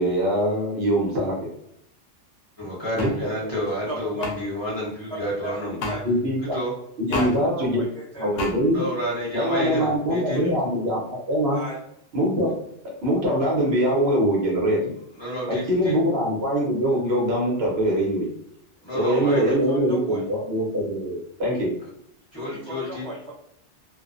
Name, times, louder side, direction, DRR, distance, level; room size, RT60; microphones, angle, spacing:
voice 1, 0.0-1.4 3.0-3.3 6.0-6.5 7.0-7.8 8.2-8.8 9.3-11.6 12.1-12.5 13.0-14.9 15.5-18.3 18.9-21.7, equal, 60° right, -4 dB, 0.9 m, -23 dB
voice 2, 2.6-5.8 6.5-6.7 8.7-10.4 15.1-15.9 18.8-19.6 21.8-21.9 22.3-23.0, equal, 25° left, -8 dB, 0.9 m, -30 dB
sound 1, 3.0-3.1 4.2-4.3 5.8-6.0 7.1-7.3 8.4-8.5, left 2 dB, 85° left, 0.9 m, -27 dB
voice 3, 3.9-4.3 5.4-5.5 5.9-6.0 7.1-8.5 10.3-10.5 11.5-11.8 19.0-20.3 22.3-23.3, right 1 dB, 5° left, -8 dB, 0.6 m, -35 dB
2.5 x 2.0 x 2.4 m, 0.77 s
omnidirectional pair, 1.2 m